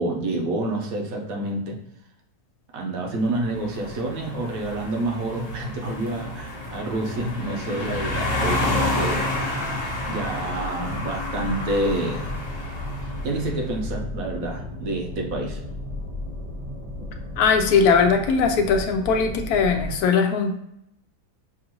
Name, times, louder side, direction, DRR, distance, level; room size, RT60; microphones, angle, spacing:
voice 1, 0.0-1.8 2.7-9.3 10.1-12.4 13.2-15.6, right 2 dB, 60° right, 0 dB, 1.1 m, -28 dB
sound 1, 3.3-13.6, left 2 dB, 50° left, 1.3 m, -30 dB
sound 2, 3.6-20.0, left 1 dB, 40° right, 0.4 m, -35 dB
voice 2, 17.4-20.6, left 5 dB, 70° left, 4 dB, 1.0 m, -20 dB
6.1 x 2.5 x 2.9 m, 0.76 s
omnidirectional pair, 1.8 m